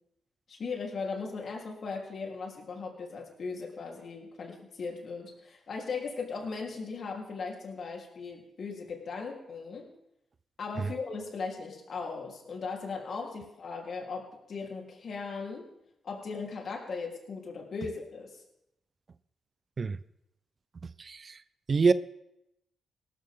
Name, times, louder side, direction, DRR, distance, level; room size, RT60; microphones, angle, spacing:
voice 1, 0.5-9.9 10.6-15.7 16.0-18.4, left 4 dB, 60° left, 0 dB, 3.8 m, -38 dB
voice 2, 20.8-21.4 21.7-21.9, right 4 dB, 45° right, 16 dB, 0.6 m, -26 dB
18.5 x 13.0 x 3.8 m, 0.82 s
cardioid pair, 80°, 0 cm